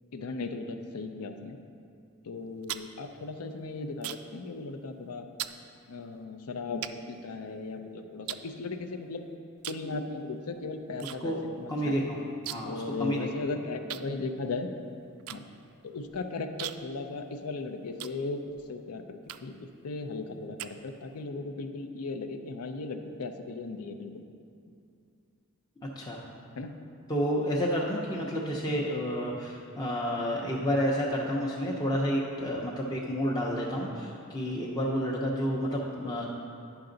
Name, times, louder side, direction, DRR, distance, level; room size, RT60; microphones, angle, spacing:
voice 1, 0.1-1.6 2.2-5.3 5.9-9.2 9.7-12.0 12.6-14.7 15.3-15.4 15.8-18.4 18.7-24.2 26.6-26.8, left 3 dB, 80° left, 7 dB, 0.6 m, -37 dB
sound 1, 2.3-4.4 4.7-5.0 5.4-5.6 6.2-6.3 6.8-7.8 8.3-9.1 9.6-9.9 10.2-11.2 11.4-11.5 11.8-12.8 13.1-13.2 13.9-18.7 19.2-19.7 20.1-21.2, right 13 dB, 70° right, 0.3 m, -41 dB
voice 2, 11.0-13.3 26.0-26.2 27.1-36.3, equal, 20° left, -4 dB, 0.6 m, -30 dB
9.7 x 5.8 x 3.9 m, 2.5 s
head